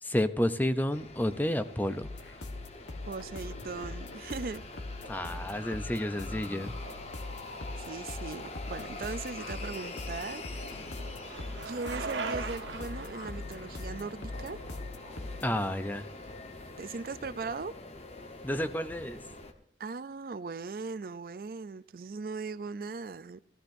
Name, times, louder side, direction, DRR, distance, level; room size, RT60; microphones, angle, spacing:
voice 1, 0.0-2.1 5.1-6.7 15.4-16.1 18.4-19.2, left 1 dB, 10° left, 0.6 m, -30 dB
sound 1, 0.9-19.5, left 2 dB, 35° left, 1.1 m, -45 dB
sound 2, 2.0-15.5, left 2 dB, 80° left, 1.4 m, -42 dB
voice 2, 3.1-4.6 7.8-10.6 11.7-14.6 16.8-17.7 19.8-23.6, right 4 dB, 50° right, 0.4 m, -39 dB
Bicycle, 9.6-15.6, right 4 dB, 90° right, 1.5 m, -41 dB
14.5 x 13.5 x 2.6 m
head